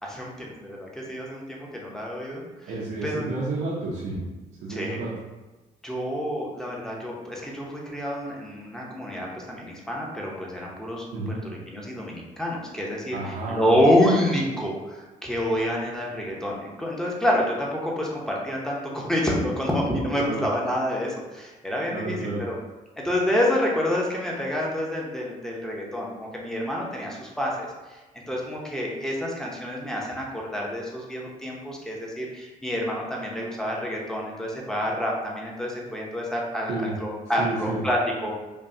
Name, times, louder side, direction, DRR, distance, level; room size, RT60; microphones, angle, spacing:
voice 1, 0.0-2.7 3.0-3.3 4.7-5.0 5.8-11.0 11.7-22.6 23.0-27.7 28.3-38.3, left 1 dB, 5° left, -3 dB, 0.8 m, -28 dB
voice 2, 2.7-4.2 4.6-5.1 11.1-11.4 13.1-13.8 20.1-20.4 21.9-22.4 36.7-36.9 37.4-37.8, right 3 dB, 80° right, -5 dB, 0.7 m, -30 dB
5.3 x 2.2 x 2.7 m, 1.2 s
cardioid pair, 120°, 14 cm